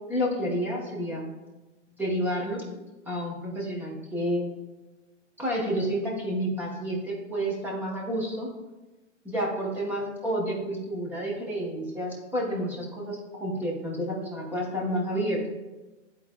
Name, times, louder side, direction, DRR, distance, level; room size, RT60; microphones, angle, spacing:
voice 1, 0.1-1.2 2.0-2.6 3.1-4.4 5.4-8.5 9.2-15.5, equal, 5° right, -4 dB, 1.0 m, -30 dB
11.0 x 4.2 x 2.3 m, 1.1 s
hypercardioid pair, 145°, 38 cm